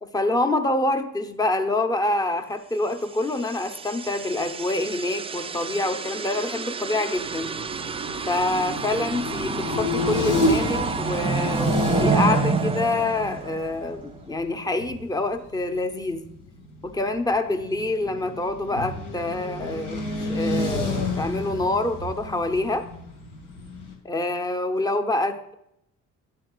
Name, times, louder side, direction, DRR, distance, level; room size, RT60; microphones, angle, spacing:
voice 1, 0.0-7.5 8.3-16.3 16.8-22.8 24.0-25.5, left 2 dB, 15° left, 8 dB, 0.7 m, -26 dB
sound 1, 3.3-14.0, right 5 dB, 20° right, 0.3 m, -29 dB
sound 2, 7.2-15.2 15.6-15.7 16.0-23.9, left 2 dB, 80° left, 2.0 m, -30 dB
10.5 x 7.6 x 2.4 m, 0.78 s
cardioid pair, 90°, 30 cm